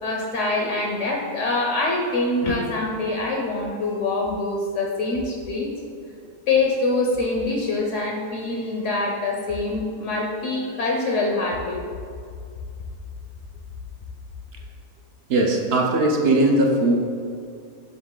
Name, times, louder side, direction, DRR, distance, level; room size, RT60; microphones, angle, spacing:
voice 1, 0.0-5.7 6.5-11.8, left 2 dB, 65° left, -1 dB, 1.0 m, -24 dB
voice 2, 15.3-16.9, right 2 dB, 55° right, 1 dB, 0.8 m, -19 dB
7.1 x 3.6 x 3.8 m, 2.3 s
omnidirectional pair, 1.5 m